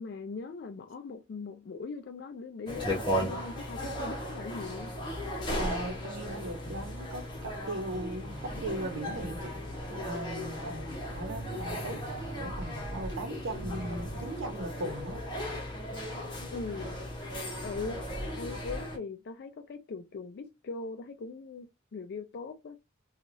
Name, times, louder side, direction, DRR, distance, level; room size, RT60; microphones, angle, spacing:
voice 1, 0.0-4.9 16.5-17.0 17.6-18.0 18.4-22.8, left 4 dB, 50° left, 0.3 m, -40 dB
sound 1, 2.7-19.0, equal, 25° left, 0.9 m, -36 dB
voice 2, 5.6-9.5 10.0-15.2, right 1 dB, 85° right, 0.9 m, -38 dB
sound 2, 8.2-14.4, right 3 dB, 55° right, 0.5 m, -46 dB
3.0 x 2.3 x 2.6 m
head